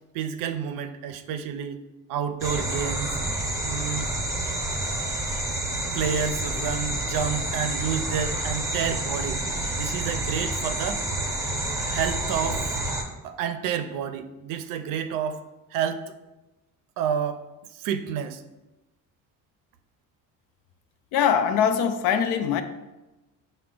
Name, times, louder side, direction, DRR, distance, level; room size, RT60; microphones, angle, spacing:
voice 1, 0.1-1.8 2.1-3.2 3.6-4.1 5.9-9.4 9.8-11.0 11.9-12.7 13.2-15.4 15.7-16.1 17.0-17.4 17.7-18.4, right 8 dB, 70° right, 10 dB, 0.5 m, -29 dB
sound 1, 2.4-13.0, right 1 dB, 10° right, 0.7 m, -29 dB
voice 2, 21.1-22.6, left 8 dB, 85° left, 8 dB, 0.5 m, -22 dB
5.6 x 2.2 x 3.7 m, 1.0 s
cardioid pair, 110°, 34 cm